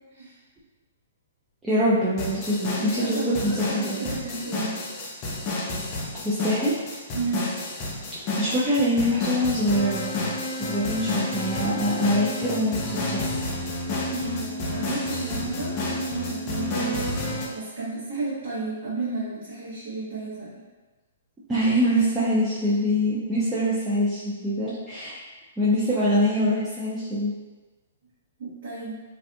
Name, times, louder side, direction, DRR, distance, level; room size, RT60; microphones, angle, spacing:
voice 1, 1.6-4.0 6.2-6.7 8.4-10.1 10.6-13.3 21.5-25.2 25.6-27.3, equal, 10° right, -11 dB, 0.5 m, -24 dB
sound 1, 2.2-17.5, left 2 dB, 35° left, 0.5 m, -30 dB
voice 2, 2.8-4.8 7.1-7.5 14.1-20.5 28.4-29.0, right 3 dB, 55° right, -12 dB, 1.1 m, -32 dB
2.6 x 2.4 x 2.2 m, 1.2 s
hypercardioid pair, 125°, 0 cm